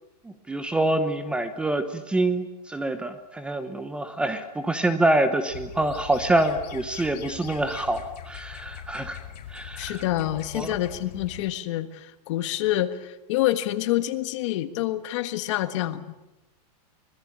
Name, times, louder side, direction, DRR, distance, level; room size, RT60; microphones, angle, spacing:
voice 1, 0.2-9.2 9.5-10.0 10.5-10.7, right 1 dB, 5° right, 10 dB, 0.9 m, -26 dB
sound 1, 5.5-11.5, left 9 dB, 90° left, 5.0 m, -41 dB
voice 2, 9.8-16.0, left 14 dB, 45° left, 11 dB, 1.6 m, -27 dB
25.0 x 20.5 x 8.7 m, 0.97 s
supercardioid pair, 170°, 21 cm